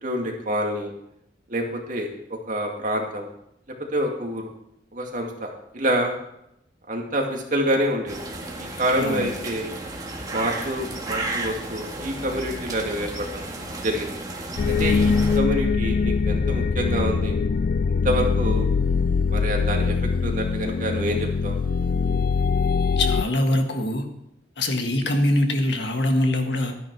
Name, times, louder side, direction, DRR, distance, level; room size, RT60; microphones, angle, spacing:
voice 1, 0.0-0.9 1.5-2.1 2.5-3.3 3.9-4.5 4.9-6.1 6.9-8.2 8.6-9.7 10.3-13.4 13.8-14.2 14.7-17.4 18.0-18.7 19.3-20.0 20.2-21.6, right 1 dB, 45° right, 1 dB, 2.2 m, -27 dB
sound 1, 8.1-15.4, right 2 dB, 20° right, 1.7 m, -33 dB
voice 2, 9.0-9.3 23.0-24.1 24.6-26.7, left 1 dB, 70° left, 4 dB, 1.7 m, -23 dB
sound 2, 14.6-23.3, left 5 dB, 50° left, 0.3 m, -22 dB
12.5 x 10.0 x 4.7 m, 0.81 s
head